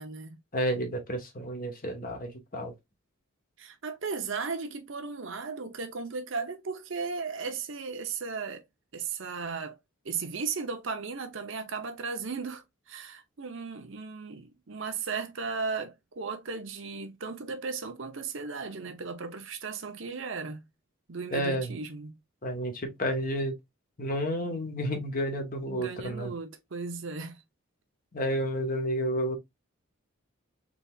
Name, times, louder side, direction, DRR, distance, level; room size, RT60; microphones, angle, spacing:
voice 1, 0.0-0.4 3.6-8.6 8.9-9.8 10.0-20.6 21.1-22.2 25.6-27.4, right 4 dB, 60° right, 0.7 m, -36 dB
voice 2, 0.5-2.7 21.3-21.7 22.4-23.5 24.0-26.3 28.1-29.4, equal, 45° left, 1.2 m, -31 dB
4.0 x 3.4 x 2.4 m
head